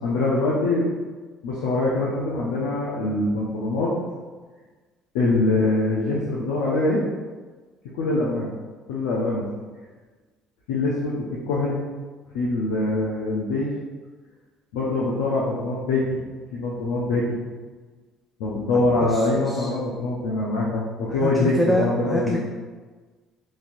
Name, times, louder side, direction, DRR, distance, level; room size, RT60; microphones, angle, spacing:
voice 1, 0.0-0.9 1.4-3.9 5.1-7.0 7.9-8.5 8.9-9.5 10.7-11.8 12.3-13.7 14.7-16.2 16.5-17.4 18.4-22.4, left 2 dB, 85° left, -5 dB, 0.5 m, -24 dB
voice 2, 19.0-19.7 21.2-22.4, equal, 5° left, 0 dB, 0.3 m, -26 dB
3.1 x 2.7 x 2.5 m, 1.4 s
supercardioid pair, 80°, 0 cm